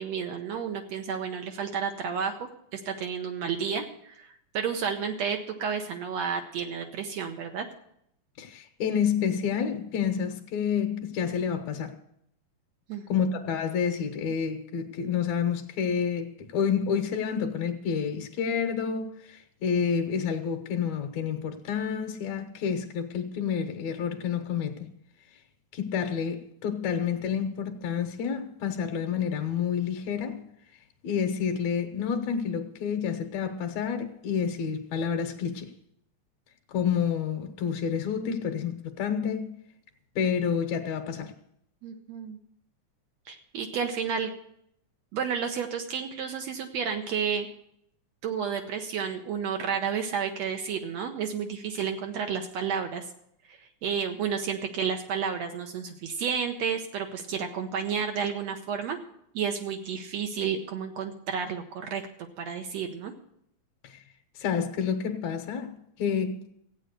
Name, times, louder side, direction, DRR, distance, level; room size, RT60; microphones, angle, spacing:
voice 1, 0.0-7.7 12.9-13.2 41.8-42.4 43.3-44.3 45.1-47.5 48.2-53.1 53.5-59.0 59.3-62.0 62.4-63.1, right 7 dB, 70° right, 2.0 m, -31 dB
voice 2, 8.4-11.9 13.1-24.9 25.7-30.4 31.0-35.7 36.7-39.5 40.2-41.3 63.8-64.0 64.4-66.4, left 7 dB, 70° left, 2.2 m, -29 dB
15.0 x 8.9 x 6.6 m
omnidirectional pair, 3.4 m